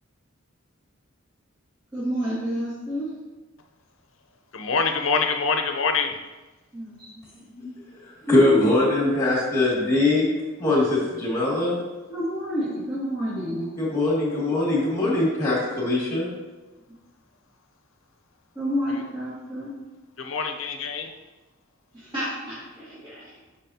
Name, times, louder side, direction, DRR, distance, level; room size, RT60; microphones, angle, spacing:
voice 1, 1.9-3.1 6.7-7.4 8.2-8.7 12.1-13.7 18.5-19.7 21.9-23.3, equal, 25° right, -13 dB, 2.1 m, -29 dB
voice 2, 4.5-6.1 18.9-19.0 20.2-21.1, left 4 dB, 70° left, 6 dB, 0.7 m, -25 dB
voice 3, 7.6-10.3 10.6-11.8 13.8-16.3, left 2 dB, 15° left, -5 dB, 2.1 m, -22 dB
9.2 x 5.0 x 2.8 m, 1.2 s
head